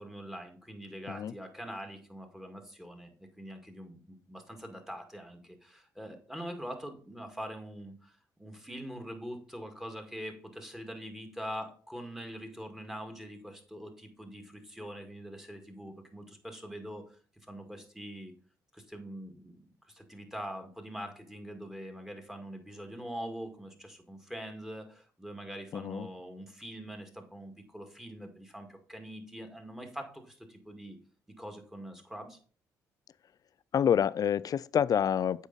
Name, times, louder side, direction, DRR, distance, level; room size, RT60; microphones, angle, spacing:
voice 1, 0.0-17.0 17.5-18.3 18.7-19.6 19.9-31.0 31.4-32.4, equal, 5° right, 1.9 m, -43 dB
voice 2, 25.7-26.1 33.7-35.5, left 8 dB, 55° left, 0.3 m, -27 dB
8.1 x 4.9 x 4.0 m
supercardioid pair, 60°, 8 cm